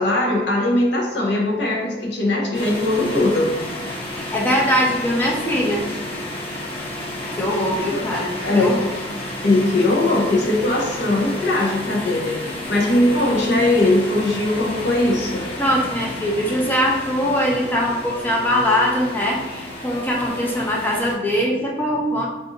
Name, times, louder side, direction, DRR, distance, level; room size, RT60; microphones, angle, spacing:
voice 1, 0.0-3.5 7.9-8.1 8.4-8.7 9.4-15.5, left 2 dB, 80° left, -2 dB, 0.7 m, -20 dB
sound 1, 2.5-21.1, left 1 dB, 30° left, 0.8 m, -31 dB
voice 2, 4.1-5.8 7.4-8.9 15.6-22.3, equal, 10° left, -2 dB, 0.4 m, -21 dB
3.8 x 2.5 x 2.5 m, 1.2 s
head